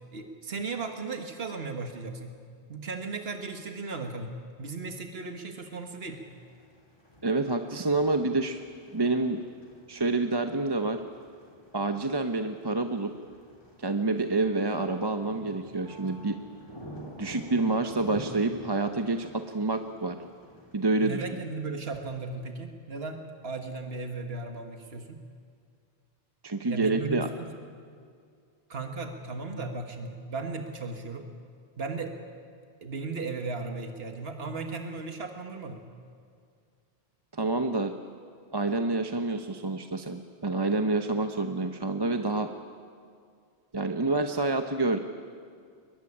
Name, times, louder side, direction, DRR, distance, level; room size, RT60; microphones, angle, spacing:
voice 1, 0.1-2.3 2.7-4.3 4.6-6.2 21.0-23.2 23.4-25.2 26.7-27.5 28.7-31.3 31.8-32.1 32.8-35.8, right 3 dB, 75° right, 5 dB, 1.8 m, -36 dB
sound 1, 6.0-20.9, equal, 25° left, 3.4 m, -49 dB
voice 2, 7.2-8.6 8.9-9.4 9.9-11.0 11.7-13.1 13.8-16.4 17.2-20.2 20.7-21.3 26.4-27.3 37.3-37.9 38.5-42.5 43.7-45.0, right 2 dB, 25° right, 6 dB, 0.9 m, -28 dB
22.0 x 21.5 x 9.9 m, 2.3 s
omnidirectional pair, 1.0 m